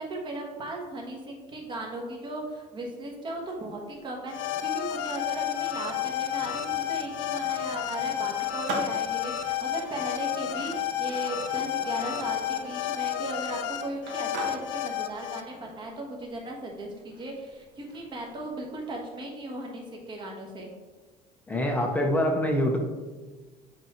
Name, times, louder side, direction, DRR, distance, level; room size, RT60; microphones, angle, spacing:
voice 1, 0.0-20.7, right 2 dB, 25° right, 0 dB, 1.2 m, -37 dB
Skateboard, 3.4-19.2, right 3 dB, 80° right, 1.6 m, -44 dB
sound 1, 4.3-15.4, left 11 dB, 85° left, 0.6 m, -31 dB
voice 2, 21.5-22.8, equal, 10° left, 1 dB, 0.6 m, -25 dB
7.9 x 4.6 x 3.0 m, 1.3 s
cardioid pair, 165°, 18 cm